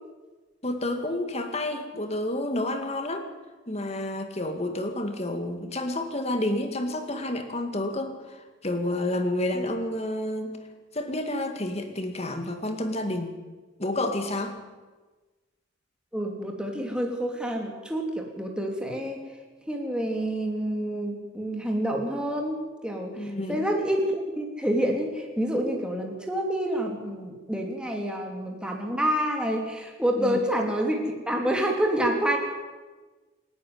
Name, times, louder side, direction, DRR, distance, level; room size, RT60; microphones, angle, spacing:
voice 1, 0.6-3.3 3.7-10.6 10.9-13.3 13.8-14.6 23.2-23.7 30.2-30.4, left 1 dB, 30° left, 6 dB, 2.3 m, -30 dB
voice 2, 16.1-19.2 19.7-32.4, right 1 dB, 5° right, 1 dB, 2.9 m, -28 dB
28.0 x 11.0 x 9.5 m, 1.3 s
head